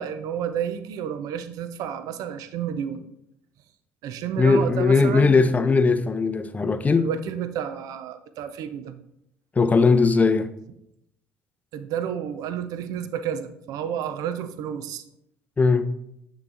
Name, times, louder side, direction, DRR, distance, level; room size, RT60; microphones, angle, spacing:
voice 1, 0.0-3.0 4.0-5.4 7.0-8.9 11.7-15.0, right 9 dB, 55° right, 0.5 m, -31 dB
voice 2, 4.4-7.1 9.6-10.5 15.6-15.9, left 4 dB, 20° left, 0.5 m, -19 dB
8.6 x 3.1 x 3.7 m
figure-of-eight pair, 55°, 7 cm